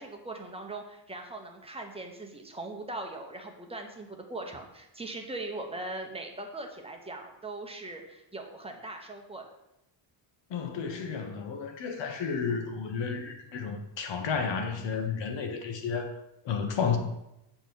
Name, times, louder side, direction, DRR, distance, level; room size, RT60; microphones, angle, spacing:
voice 1, 0.0-9.5, right 2 dB, 10° right, 1.0 m, -40 dB
voice 2, 10.5-16.2 16.4-17.0, left 6 dB, 60° left, 1.3 m, -32 dB
7.8 x 4.3 x 7.0 m
cardioid pair, 170°, 49 cm